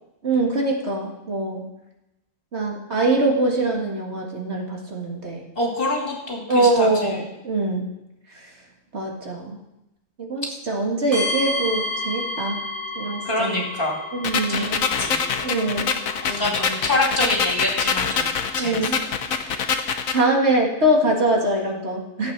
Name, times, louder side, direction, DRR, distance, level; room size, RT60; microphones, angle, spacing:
voice 1, 0.2-1.7 2.5-5.4 6.5-7.8 8.3-8.5 8.9-9.6 10.2-12.6 13.0-13.7 14.1-14.7 15.4-15.9 16.2-16.4 18.6-19.0 20.1-22.3, right 2 dB, 55° right, 0 dB, 2.2 m, -23 dB
voice 2, 5.6-6.9 13.2-14.0 14.5-15.3 16.2-18.3 18.6-18.9, left 2 dB, 45° left, -1 dB, 2.9 m, -26 dB
sound 1, 11.1-17.1, left 2 dB, 15° right, 5.6 m, -31 dB
sound 2, 14.2-20.2, left 6 dB, 85° left, 1.3 m, -25 dB
14.5 x 8.1 x 6.0 m, 0.91 s
omnidirectional pair, 1.4 m